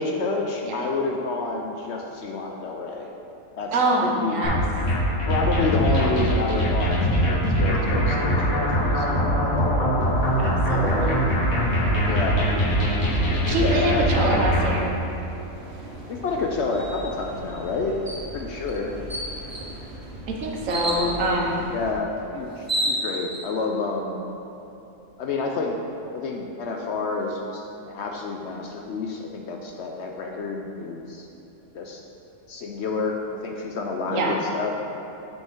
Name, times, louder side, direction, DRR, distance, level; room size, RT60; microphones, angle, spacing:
voice 1, 0.0-3.1 3.6-4.5 5.3-9.9 10.7-11.3 12.0-12.4 13.5-14.5 16.1-18.0 18.3-19.0 20.9-21.0 21.6-24.2 25.2-25.8 26.1-31.3 31.7-32.0 32.5-33.2 33.4-34.7, left 3 dB, 65° left, 1 dB, 0.7 m, -29 dB
voice 2, 3.7-4.6 5.9-6.2 10.4-11.2 13.5-14.9 20.4-21.6 34.0-34.4, right 2 dB, 70° right, 0 dB, 1.2 m, -25 dB
sound 1, 4.4-14.8, equal, 80° left, 2.0 m, -22 dB
sound 2, 10.1-22.0, right 1 dB, 45° right, 1.1 m, -40 dB
sound 3, 18.1-18.2 18.7-18.8 19.1-19.7 20.7-21.1 22.2-22.3 22.5-23.4, right 1 dB, 20° right, 0.7 m, -27 dB
7.6 x 5.2 x 3.6 m, 3.0 s
omnidirectional pair, 1.4 m